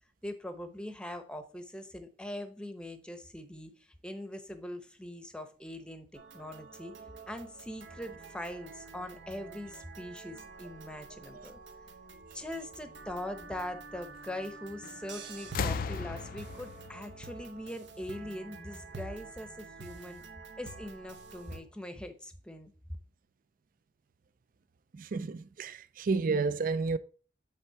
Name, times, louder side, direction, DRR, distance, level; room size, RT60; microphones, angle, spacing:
voice 1, 0.2-6.9 7.3-11.6 12.3-20.2 20.6-22.7, left 1 dB, 5° left, 0.7 m, -42 dB
sound 1, 6.1-21.6, right 4 dB, 75° right, 0.9 m, -48 dB
sound 2, 14.8-15.1 15.4-18.2 19.3-19.4, left 5 dB, 50° left, 0.3 m, -37 dB
voice 2, 24.9-27.0, right 4 dB, 50° right, 0.4 m, -31 dB
8.3 x 3.4 x 4.5 m
head